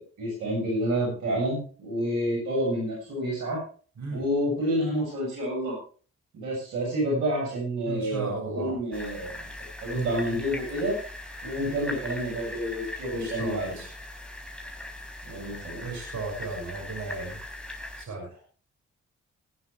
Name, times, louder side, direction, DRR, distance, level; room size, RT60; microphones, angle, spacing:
voice 1, 0.0-3.6 4.1-5.8 6.3-9.5 9.8-11.0 11.4-13.8 15.2-15.8, equal, 90° right, -2 dB, 7.3 m, -29 dB
voice 2, 7.9-8.7 13.1-13.9 15.8-17.4 18.0-18.4, right 3 dB, 65° right, 0 dB, 5.9 m, -35 dB
sound 1, 8.9-18.1, left 1 dB, 5° left, 4.7 m, -40 dB
19.5 x 9.8 x 3.4 m, 0.39 s
supercardioid pair, 45°, 31 cm